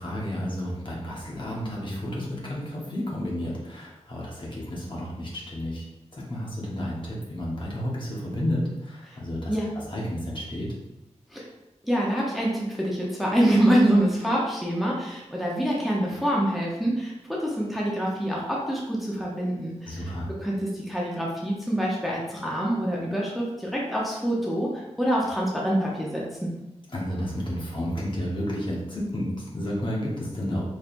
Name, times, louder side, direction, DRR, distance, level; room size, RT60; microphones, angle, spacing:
voice 1, 0.0-5.9 6.1-10.7 19.9-20.4 26.9-30.6, equal, 45° left, -4 dB, 1.2 m, -31 dB
voice 2, 11.8-17.1 17.4-20.1 20.4-24.7 25.0-26.5, right 1 dB, ahead, -4 dB, 0.8 m, -25 dB
4.3 x 3.2 x 2.6 m, 0.93 s
wide cardioid pair, 65°, 12 cm